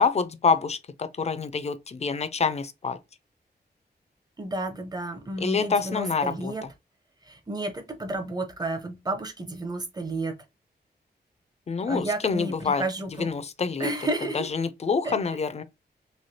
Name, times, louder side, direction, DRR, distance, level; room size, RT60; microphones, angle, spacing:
voice 1, 0.0-3.0 5.4-6.7 11.7-12.8 13.1-13.9 14.3-15.6, left 5 dB, 40° left, 0.4 m, -26 dB
voice 2, 4.4-6.6 7.2-10.3 11.8-13.3 13.8-14.5 15.0-15.2, right 2 dB, 25° right, 0.7 m, -31 dB
3.2 x 2.7 x 2.7 m
wide cardioid pair, 145°, 17 cm